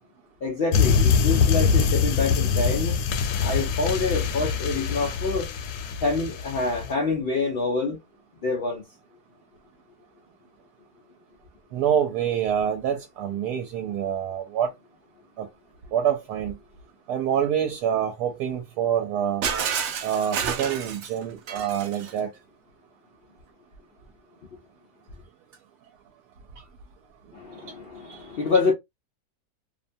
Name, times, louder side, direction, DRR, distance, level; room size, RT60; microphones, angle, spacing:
voice 1, 0.4-3.0 3.4-5.5 6.0-8.0 8.4-8.8 27.3-28.7, left 3 dB, 70° left, 0.5 m, -26 dB
sound 1, 0.7-6.9, left 6 dB, 90° left, 1.1 m, -23 dB
voice 2, 11.7-14.7 15.4-15.5 15.9-16.5 17.1-19.4 20.0-22.3 28.1-28.2, right 9 dB, 85° right, 1.1 m, -26 dB
Shatter, 19.4-22.2, right 7 dB, 70° right, 0.7 m, -29 dB
2.7 x 2.2 x 2.5 m
omnidirectional pair, 1.6 m